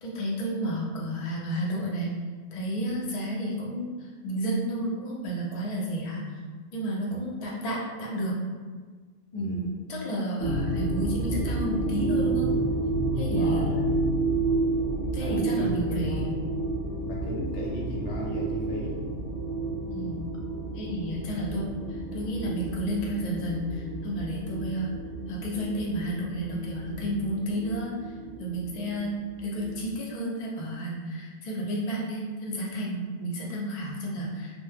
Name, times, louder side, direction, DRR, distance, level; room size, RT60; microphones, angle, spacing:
voice 1, 0.0-2.1 2.5-6.3 6.7-8.4 9.3-12.5 13.2-13.7 15.1-16.3 19.9-20.3 20.7-24.9 25.3-28.0 28.4-34.6, equal, 50° left, -3 dB, 0.5 m, -31 dB
voice 2, 9.3-9.7 13.2-13.9 15.2-16.2 17.1-19.0, right 1 dB, 80° left, -3 dB, 0.9 m, -36 dB
sound 1, 10.4-29.8, right 2 dB, 60° right, 0.7 m, -30 dB
2.1 x 2.1 x 3.2 m, 1.5 s
omnidirectional pair, 1.2 m